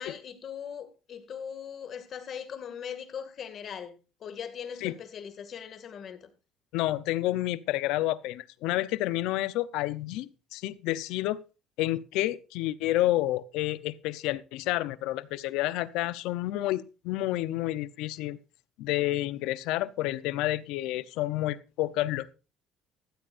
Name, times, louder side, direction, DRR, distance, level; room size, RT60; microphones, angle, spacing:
voice 1, 0.0-6.3, left 8 dB, 45° left, 2.1 m, -40 dB
voice 2, 6.7-11.4 11.8-18.4 18.8-22.3, left 16 dB, 80° left, 0.7 m, -29 dB
15.5 x 13.5 x 2.6 m
cardioid pair, 135°, 0 cm